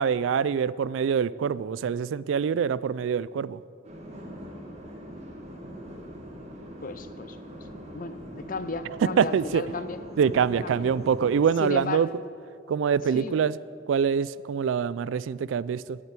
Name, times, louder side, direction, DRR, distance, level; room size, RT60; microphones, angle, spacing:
voice 1, 0.0-3.6 9.2-9.6 10.2-12.1 12.7-13.6 13.9-16.0, right 7 dB, 70° right, 19 dB, 0.3 m, -25 dB
sound 1, 3.8-11.4, equal, 35° right, 1.8 m, -42 dB
voice 2, 6.8-7.7 7.9-10.0 10.6-10.9 11.6-12.1 13.1-13.4, left 3 dB, 45° left, 13 dB, 0.6 m, -35 dB
11.5 x 8.8 x 8.3 m, 2.4 s
head